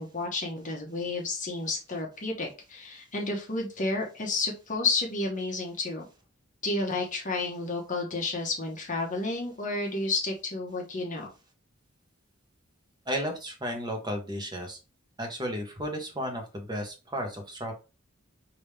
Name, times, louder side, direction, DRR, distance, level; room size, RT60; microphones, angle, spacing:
voice 1, 0.0-6.0 6.6-11.3, left 3 dB, 40° left, 1 dB, 1.0 m, -31 dB
voice 2, 13.1-14.8 15.2-17.7, equal, 20° right, 3 dB, 1.1 m, -33 dB
5.2 x 2.8 x 3.3 m, 0.30 s
head